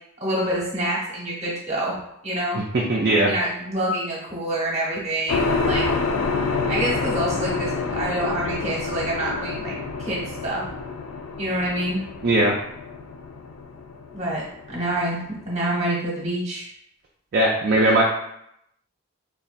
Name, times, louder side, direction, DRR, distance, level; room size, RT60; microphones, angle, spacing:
voice 1, 0.2-2.0 2.2-2.6 3.3-5.9 6.7-10.7 11.4-12.0 14.1-16.6, right 1 dB, 30° right, -5 dB, 1.0 m, -27 dB
voice 2, 2.9-3.3 12.2-12.5 17.3-18.0, right 1 dB, 45° right, -3 dB, 0.4 m, -19 dB
sound 1, 5.3-15.4, left 4 dB, 70° left, 0.4 m, -28 dB
4.1 x 2.3 x 2.5 m, 0.76 s
head